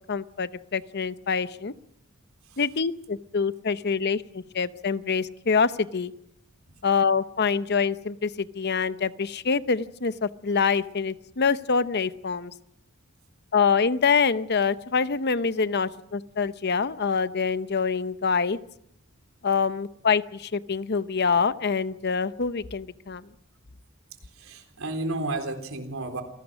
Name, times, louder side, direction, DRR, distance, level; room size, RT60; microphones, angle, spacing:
voice 1, 0.1-1.7 2.6-6.1 6.8-12.5 13.5-18.6 19.4-23.3, left 5 dB, 55° left, 14 dB, 0.8 m, -25 dB
voice 2, 24.4-26.2, right 2 dB, 90° right, 6 dB, 3.8 m, -32 dB
27.5 x 18.0 x 6.3 m, 0.73 s
head